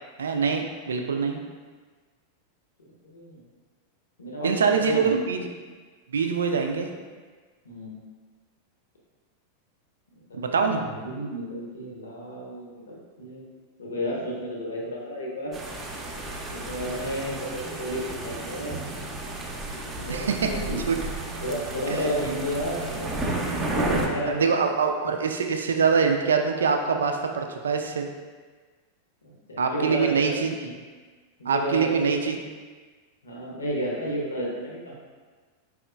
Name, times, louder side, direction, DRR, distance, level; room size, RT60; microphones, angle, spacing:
voice 1, 0.2-1.4 4.4-5.5 6.1-6.9 10.3-10.8 20.1-20.5 20.9-21.0 21.9-22.1 24.3-28.1 29.6-30.7 31.5-32.4, right 5 dB, 70° right, 4 dB, 0.3 m, -24 dB
voice 2, 3.0-3.4 4.2-5.2 7.6-8.0 10.3-13.4 13.8-15.6 16.5-18.8 20.0-21.0 21.4-23.1 23.5-24.6 29.2-30.4 31.4-32.3 33.2-34.9, equal, 70° left, -3 dB, 0.8 m, -32 dB
sound 1, 15.5-24.1, right 2 dB, 20° right, 0.6 m, -32 dB
4.6 x 3.5 x 2.3 m, 1.4 s
figure-of-eight pair, 90°, 0 cm